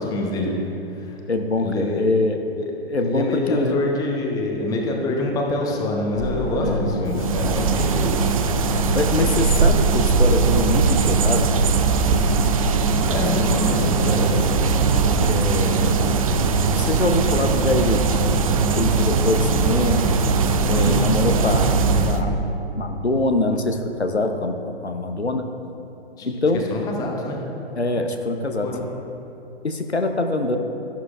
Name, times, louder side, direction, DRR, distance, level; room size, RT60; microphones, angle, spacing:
voice 1, 0.0-1.2 1.6-2.2 2.5-2.7 3.0-8.8 12.9-14.4 20.7-21.0 26.2-26.3 26.5-27.4 28.6-28.8, left 2 dB, 10° left, 0 dB, 0.9 m, -26 dB
voice 2, 1.3-2.4 2.9-3.8 6.6-6.8 8.9-11.5 15.2-18.2 18.7-20.2 20.7-22.3 22.8-24.6 24.8-25.4 26.2-26.6 27.8-28.7 29.6-30.6, left 2 dB, 90° left, 5 dB, 0.9 m, -24 dB
sound 1, 6.1-22.4, right 1 dB, 65° left, 2.0 m, -26 dB
sound 2, 7.1-22.2, right 5 dB, 35° right, 0.5 m, -21 dB
12.5 x 11.5 x 2.5 m, 2.9 s
figure-of-eight pair, 120°, 32 cm